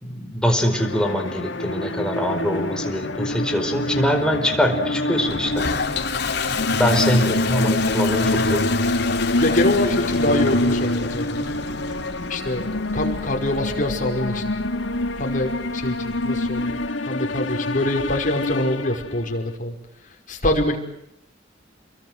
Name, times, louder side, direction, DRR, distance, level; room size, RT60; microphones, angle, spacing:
voice 1, 0.0-5.7 6.8-8.8, equal, 5° left, 4 dB, 4.7 m, -23 dB
sound 1, 0.6-19.3, left 1 dB, 85° left, 2.6 m, -26 dB
Toilet flush, 5.3-16.9, left 5 dB, 60° left, 3.0 m, -31 dB
voice 2, 9.4-11.4 12.3-12.7 12.9-14.5 15.2-16.8 17.1-19.7 20.3-20.8, left 1 dB, 45° left, 2 dB, 5.5 m, -24 dB
30.0 x 23.0 x 7.8 m, 0.81 s
head